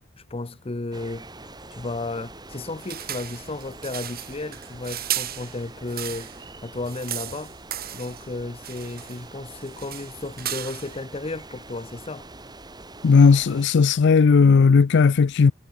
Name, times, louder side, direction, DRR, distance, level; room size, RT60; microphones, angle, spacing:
voice 1, 0.3-1.3 1.7-7.5 7.9-12.3, left 2 dB, 30° left, 0.7 m, -33 dB
sound 1, 0.9-13.7, right 2 dB, 20° right, 5.6 m, -44 dB
sound 2, 2.8-6.4 6.7-8.3 8.6-9.2 9.5-11.0, right 12 dB, 50° right, 3.5 m, -35 dB
voice 2, 13.0-15.5, left 5 dB, 60° left, 0.4 m, -16 dB
head